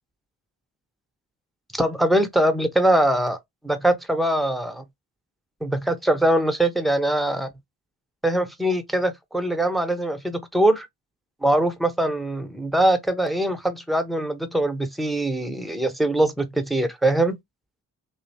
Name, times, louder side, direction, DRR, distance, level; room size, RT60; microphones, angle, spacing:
voice 1, 1.7-3.4 3.6-4.8 5.6-7.5 8.2-10.9 11.4-17.4, right 1 dB, ahead, 0.6 m, -22 dB
2.7 x 2.1 x 2.7 m
supercardioid pair, 50°, 39 cm